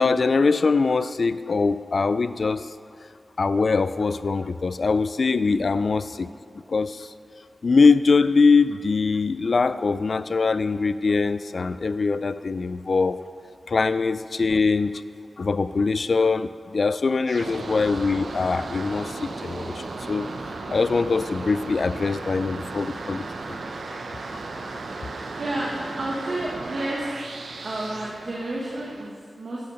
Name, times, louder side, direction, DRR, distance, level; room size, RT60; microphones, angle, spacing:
voice 1, 0.0-2.7 3.4-6.3 6.7-7.1 7.6-13.2 13.7-14.9 15.4-20.3 20.7-23.2, left 4 dB, 60° left, 13 dB, 0.3 m, -22 dB
sound 1, 17.3-29.1, right 3 dB, 85° right, 0.7 m, -35 dB
voice 2, 25.4-27.1 27.6-29.6, right 1 dB, 55° right, -4 dB, 1.3 m, -31 dB
10.5 x 6.7 x 5.3 m, 2.4 s
wide cardioid pair, 115°, 0 cm